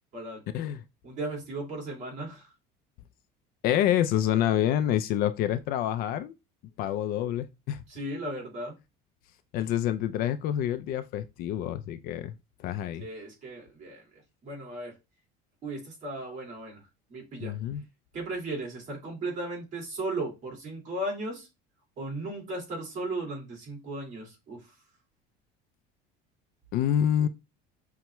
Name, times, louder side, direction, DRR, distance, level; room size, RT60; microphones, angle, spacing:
voice 1, 1.0-2.5 7.9-8.8 13.0-15.0 15.6-16.8 17.1-17.6 18.1-21.5 22.0-24.8, right 2 dB, 40° right, 2.1 m, -36 dB
voice 2, 3.6-6.4 6.8-7.8 9.5-12.3 12.6-13.1 17.4-17.8 26.7-27.3, left 11 dB, 50° left, 0.4 m, -27 dB
5.6 x 2.2 x 3.0 m
cardioid pair, 150°, 19 cm